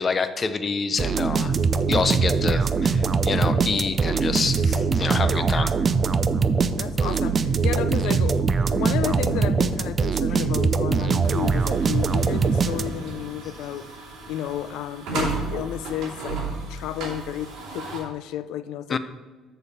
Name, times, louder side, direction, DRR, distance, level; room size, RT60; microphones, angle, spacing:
voice 1, 0.0-1.5 1.9-5.7 18.9-19.0, left 4 dB, 30° left, 11 dB, 0.5 m, -26 dB
sound 1, 1.0-13.2, right 5 dB, 30° right, 0.3 m, -22 dB
voice 2, 6.8-13.9 14.3-19.0, left 12 dB, 80° left, 14 dB, 0.4 m, -32 dB
sound 2, 11.2-18.0, right 3 dB, 65° right, 2.8 m, -34 dB
6.9 x 6.6 x 4.3 m, 1.3 s
cardioid pair, 140°, 0 cm